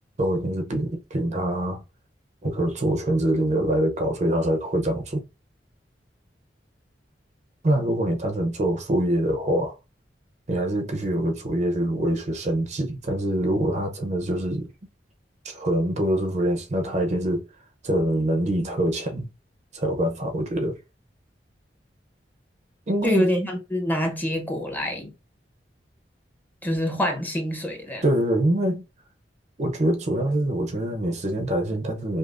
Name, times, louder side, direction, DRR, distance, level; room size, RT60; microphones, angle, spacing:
voice 1, 0.2-1.8 2.4-5.2 7.6-9.8 10.5-14.7 15.4-17.5 17.8-19.3 19.7-20.8 22.9-23.2 28.0-28.8 29.6-32.2, right 1 dB, 40° right, 0.6 m, -24 dB
voice 2, 23.0-25.1 26.6-28.0, left 1 dB, 10° left, 0.7 m, -26 dB
5.1 x 2.1 x 2.4 m
head